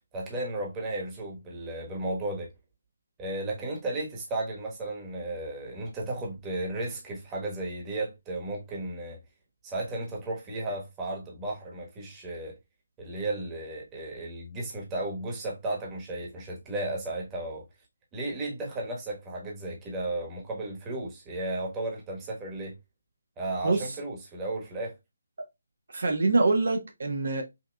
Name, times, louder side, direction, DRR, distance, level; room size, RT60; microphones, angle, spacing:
voice 1, 0.1-2.5 3.2-9.2 9.6-12.6 13.0-17.6 18.1-22.7 23.4-25.0, right 2 dB, 15° right, 1.3 m, -34 dB
voice 2, 23.6-23.9 25.9-27.4, right 3 dB, 65° right, 1.1 m, -25 dB
5.6 x 2.8 x 2.3 m
figure-of-eight pair, 160°, 0 cm